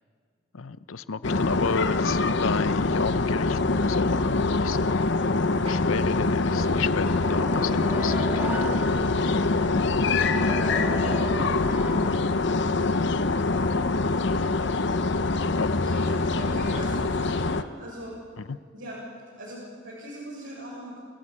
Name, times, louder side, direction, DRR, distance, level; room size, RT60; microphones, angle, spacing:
voice 1, 0.5-4.9 5.7-9.0 15.6-15.7 18.4-18.6, left 4 dB, 90° left, 15 dB, 0.7 m, -32 dB
sound 1, 1.2-17.6, left 3 dB, 60° left, 0.8 m, -24 dB
sound 2, 4.5-14.0 14.3-15.3 15.7-17.0 17.8-18.1 18.5-18.6, right 1 dB, 35° right, 3.9 m, -46 dB
sound 3, 7.0-9.7 10.3-12.8, right 1 dB, 10° right, 4.2 m, -36 dB
voice 2, 10.3-12.2 15.8-18.2 18.7-19.0 19.4-21.0, right 1 dB, 75° right, -7 dB, 7.2 m, -40 dB
28.5 x 16.5 x 8.7 m, 2.1 s
head